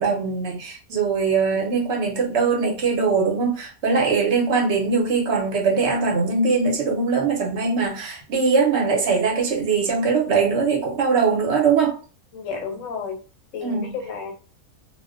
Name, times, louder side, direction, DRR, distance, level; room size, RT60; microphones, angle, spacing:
voice 1, 0.0-12.0 13.6-13.9, right 5 dB, 60° right, 0.8 m, -21 dB
voice 2, 12.3-13.2 13.5-14.3, left 5 dB, 65° left, 0.9 m, -32 dB
2.3 x 2.1 x 2.4 m
omnidirectional pair, 1.6 m